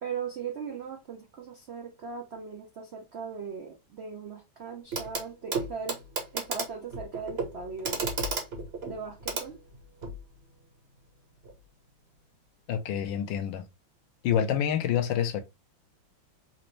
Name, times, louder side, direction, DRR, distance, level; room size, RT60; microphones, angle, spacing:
voice 1, 0.0-6.0 6.3-8.1 8.8-9.6, right 6 dB, 80° right, 0.5 m, -39 dB
Clock, 4.9-5.2 5.5-10.2 11.4-11.5, right 3 dB, 45° right, 0.9 m, -34 dB
voice 2, 12.7-13.7 14.2-15.4, left 9 dB, 75° left, 1.3 m, -27 dB
4.0 x 2.5 x 3.0 m
omnidirectional pair, 2.1 m